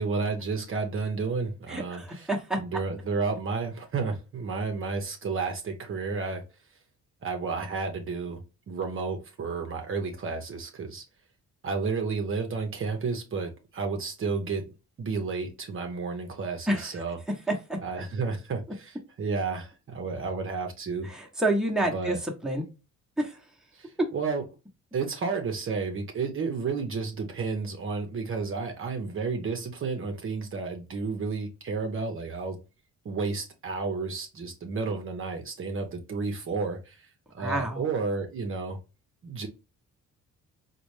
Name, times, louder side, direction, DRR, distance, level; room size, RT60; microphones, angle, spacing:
voice 1, 0.0-2.3 2.6-6.4 7.2-8.4 8.7-11.0 11.6-14.6 15.0-17.2 17.8-21.1 21.9-22.2 23.7-24.4 24.9-32.6 33.0-37.1 37.3-38.8 39.2-39.5, right 4 dB, 45° right, 0.7 m, -31 dB
voice 2, 1.7-2.6 16.7-17.0 17.5-17.8 21.0-22.7 23.2-23.5 37.4-37.8, right 1 dB, ahead, 0.9 m, -29 dB
4.0 x 2.2 x 3.1 m
cardioid pair, 90°, 30 cm